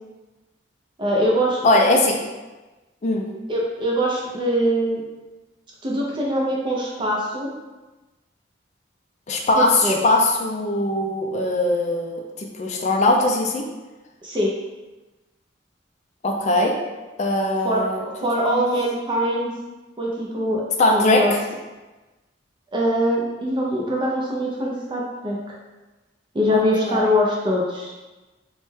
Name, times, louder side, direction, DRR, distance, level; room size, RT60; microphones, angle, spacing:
voice 1, 1.0-1.6 3.5-5.0 5.8-7.5 9.6-10.0 14.2-14.6 17.6-19.5 20.0-20.6 20.9-21.3 22.7-25.4 26.3-27.9, equal, 25° right, -3 dB, 0.4 m, -23 dB
voice 2, 1.6-2.2 3.0-3.3 9.3-13.7 16.2-16.7 17.2-18.0 18.5-18.6 20.8-21.4 26.5-27.1, left 2 dB, 40° left, 1 dB, 0.4 m, -20 dB
3.1 x 2.2 x 3.1 m, 1.2 s
head